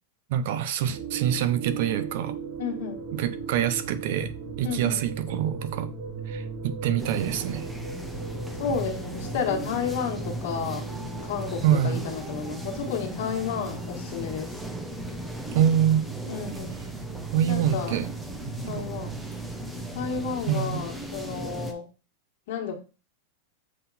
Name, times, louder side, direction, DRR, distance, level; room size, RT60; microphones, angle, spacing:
voice 1, 0.3-2.3 3.1-4.3 4.6-5.9 6.3-7.7 11.6-12.0 15.5-16.0 17.3-18.1 18.4-18.8 20.5-20.8, right 10 dB, 60° right, 0.7 m, -25 dB
sound 1, 0.9-20.5, right 5 dB, 40° right, 2.7 m, -37 dB
voice 2, 2.6-3.1 4.6-5.1 8.6-10.9 11.2-14.6 16.3-16.8 17.5-18.0 18.7-19.2 19.9-21.8 22.5-22.7, left 6 dB, 60° left, 1.8 m, -32 dB
sound 2, 7.0-21.7, equal, 5° right, 0.8 m, -38 dB
7.5 x 3.9 x 4.2 m
supercardioid pair, 155°, 0 cm